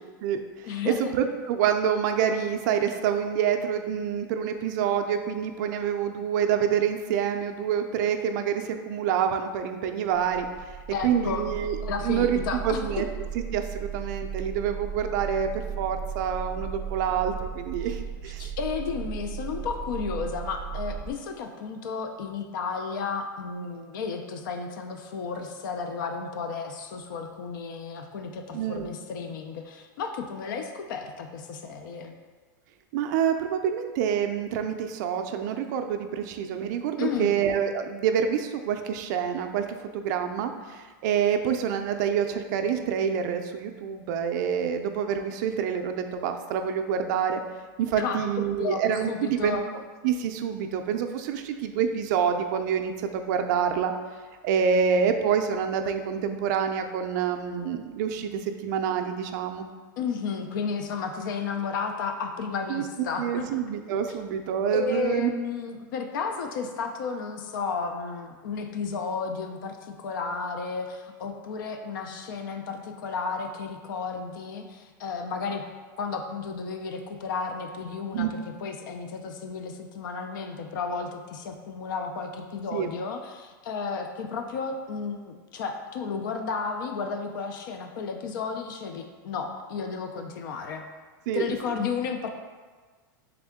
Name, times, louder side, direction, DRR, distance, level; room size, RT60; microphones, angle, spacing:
voice 1, 0.0-10.5 11.0-11.8 12.0-13.1 13.5-18.5 28.5-28.9 32.9-47.4 47.8-49.6 50.0-53.9 54.4-59.6 62.7-62.8 63.2-65.3 78.1-78.3 82.7-82.9 91.3-91.8, right 8 dB, 60° right, 6 dB, 0.4 m, -27 dB
voice 2, 0.6-1.1 10.9-11.5 11.8-13.1 18.4-32.2 37.0-37.4 47.9-49.6 60.0-63.5 64.1-64.2 64.7-75.6 76.0-90.8 91.3-92.3, left 5 dB, 70° left, 5 dB, 0.5 m, -33 dB
sound 1, 10.1-21.1, right 7 dB, 5° left, 0.5 m, -36 dB
3.6 x 3.4 x 3.5 m, 1.4 s
supercardioid pair, 135°, 11 cm